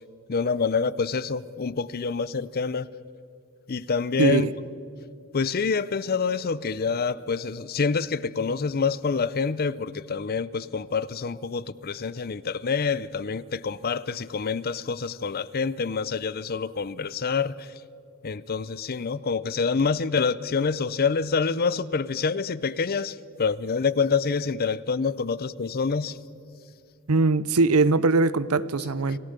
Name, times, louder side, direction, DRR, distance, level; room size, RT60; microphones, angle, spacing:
voice 1, 0.3-2.9 3.7-4.5 5.3-17.7 18.2-26.2 29.1-29.2, left 5 dB, 40° left, 18 dB, 0.5 m, -27 dB
voice 2, 4.2-4.5 27.1-29.2, right 3 dB, 75° right, 17 dB, 0.7 m, -21 dB
27.0 x 17.0 x 6.8 m, 2.4 s
head